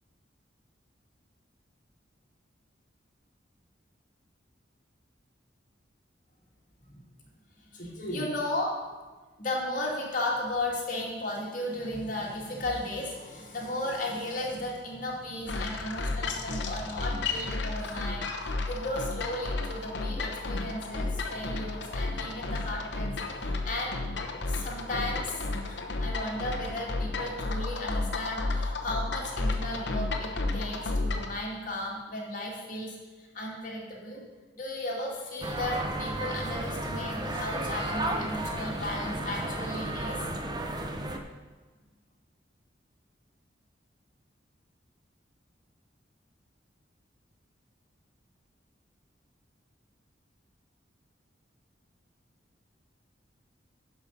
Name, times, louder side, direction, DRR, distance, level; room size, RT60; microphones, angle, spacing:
voice 1, 7.6-8.8 9.4-23.1 23.4-24.0 24.5-34.2 34.5-40.2, left 1 dB, 45° left, -3 dB, 2.2 m, -35 dB
sound 1, 15.5-31.4, left 2 dB, 70° left, 0.9 m, -32 dB
sound 2, 35.4-41.2, right 1 dB, 20° right, 0.7 m, -33 dB
11.0 x 5.5 x 5.5 m, 1.3 s
head